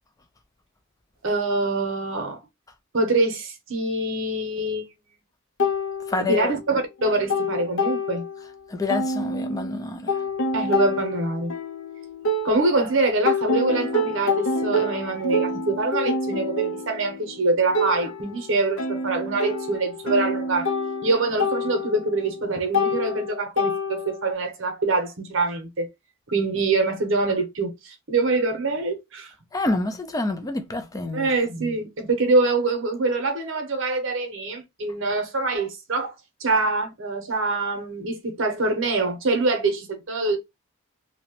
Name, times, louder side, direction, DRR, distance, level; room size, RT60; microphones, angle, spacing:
voice 1, 1.2-2.4 2.9-4.9 6.2-8.2 10.5-11.5 12.4-20.7 21.0-25.9 26.3-29.3 31.1-36.1 36.4-40.4, right 3 dB, 60° right, 0.8 m, -24 dB
sound 1, 5.6-6.7 7.0-8.5 8.9-12.9 13.3-24.3, left 2 dB, 65° left, 0.6 m, -27 dB
voice 2, 6.1-6.6 8.7-10.2 29.5-31.3, left 2 dB, 15° left, 0.3 m, -27 dB
2.8 x 2.1 x 2.8 m
head